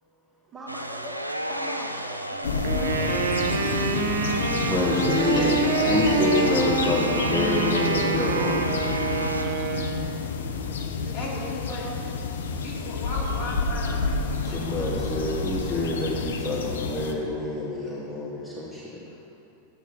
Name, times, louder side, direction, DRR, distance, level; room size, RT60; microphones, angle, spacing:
voice 1, 0.4-1.1 1.4-3.4 11.0-12.0, right 2 dB, 20° right, -3 dB, 1.8 m, -41 dB
sound 1, 0.7-9.5, equal, 90° right, 0.5 m, -32 dB
sound 2, 2.4-17.1, left 4 dB, 65° left, 0.7 m, -29 dB
Wind instrument woodwind instrument, 2.6-10.2, right 6 dB, 55° right, 0.8 m, -28 dB
voice 2, 4.5-5.6 5.9-8.7 14.4-19.0, left 2 dB, 10° left, -6 dB, 1.6 m, -27 dB
voice 3, 5.2-6.0 11.1-11.9 12.6-14.7, left 2 dB, 35° left, -5 dB, 2.7 m, -34 dB
12.5 x 8.2 x 4.3 m, 2.6 s
figure-of-eight pair, 90°, 0 cm